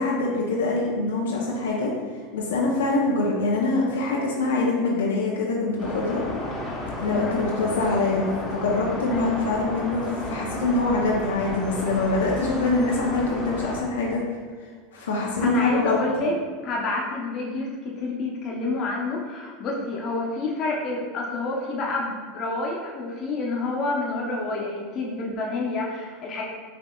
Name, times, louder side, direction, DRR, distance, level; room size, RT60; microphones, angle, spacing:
voice 1, 0.0-1.9 2.3-6.2 7.0-14.2 14.9-16.0, left 3 dB, 90° left, -2 dB, 0.6 m, -24 dB
sound 1, 5.8-13.8, left 1 dB, 15° left, 1.0 m, -32 dB
voice 2, 9.1-9.4 15.4-16.3 16.6-26.4, left 2 dB, 45° left, -2 dB, 0.8 m, -29 dB
5.1 x 2.7 x 2.3 m, 1.5 s
supercardioid pair, 110°, 0 cm